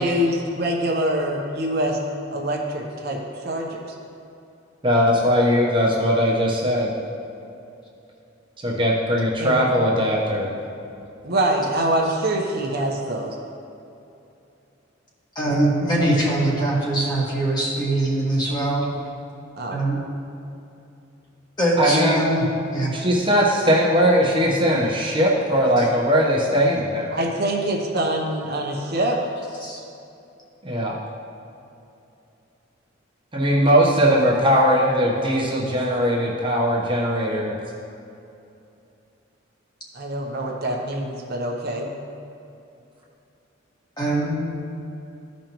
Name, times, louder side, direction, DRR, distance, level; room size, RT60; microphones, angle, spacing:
voice 1, 0.0-2.0 2.3-3.2 3.4-3.8 9.4-9.7 11.2-13.3 19.6-19.8 27.1-29.2 39.9-41.9, right 1 dB, 55° right, 0 dB, 0.9 m, -24 dB
voice 2, 4.8-6.9 8.6-10.5 21.8-22.2 22.9-27.1 30.6-31.0 33.3-37.5, equal, 25° right, -4 dB, 1.0 m, -19 dB
voice 3, 15.3-18.9 19.7-20.0 21.6-22.5 22.7-22.9 25.8-25.9 29.6-29.8 44.0-44.4, right 1 dB, 20° left, -5 dB, 1.6 m, -22 dB
14.5 x 5.2 x 3.0 m, 2.7 s
head